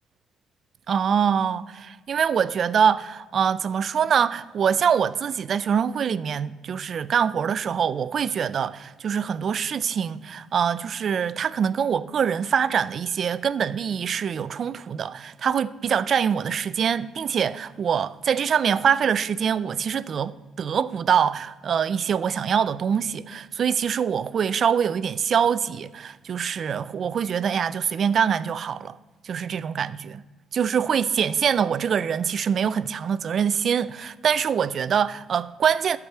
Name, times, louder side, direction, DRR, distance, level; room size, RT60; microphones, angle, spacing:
voice 1, 0.9-29.0 29.2-30.2 30.5-36.0, right 7 dB, 40° right, 0.3 m, -24 dB
11.0 x 4.8 x 7.8 m
cardioid pair, 165°, 0 cm